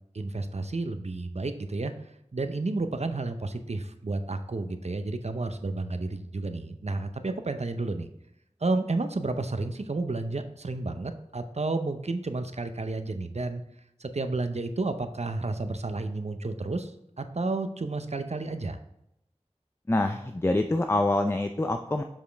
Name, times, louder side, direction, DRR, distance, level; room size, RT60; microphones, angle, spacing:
voice 1, 0.1-1.9 2.3-8.1 8.6-13.6 14.0-18.8, right 3 dB, 65° right, 8 dB, 0.6 m, -31 dB
voice 2, 19.9-22.0, left 2 dB, 20° left, 6 dB, 0.4 m, -25 dB
7.2 x 5.1 x 3.4 m, 0.79 s
wide cardioid pair, 45°, 12 cm